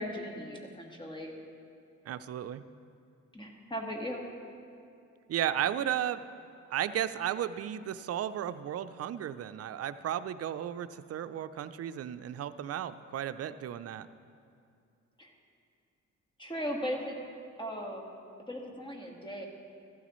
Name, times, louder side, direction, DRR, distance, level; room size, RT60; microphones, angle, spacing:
voice 1, 0.0-1.4 3.3-4.2 15.2-15.3 16.4-17.2 17.6-18.1 18.5-19.5, equal, 15° left, 0 dB, 1.7 m, -37 dB
voice 2, 2.1-2.6 5.3-6.2 6.7-14.1, right 10 dB, 55° right, 12 dB, 0.5 m, -34 dB
15.0 x 12.0 x 3.1 m, 2.5 s
cardioid pair, 90°, 30 cm